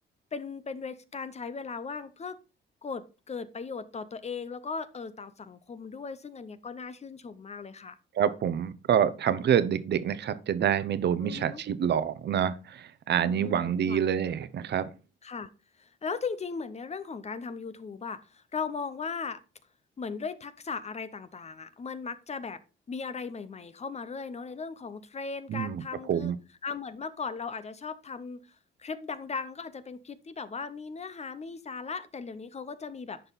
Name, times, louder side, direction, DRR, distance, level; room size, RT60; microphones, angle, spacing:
voice 1, 0.3-2.4 2.8-8.0 11.2-11.6 13.2-14.0 15.2-15.5 15.8-19.4 20.0-22.6 22.9-26.3 26.6-28.4 28.8-33.2, left 5 dB, 35° left, 13 dB, 0.8 m, -37 dB
voice 2, 8.1-14.9 25.5-25.8 26.1-26.4, right 9 dB, 60° right, 13 dB, 0.9 m, -27 dB
10.0 x 5.4 x 4.1 m, 0.33 s
cardioid pair, 90°, 20 cm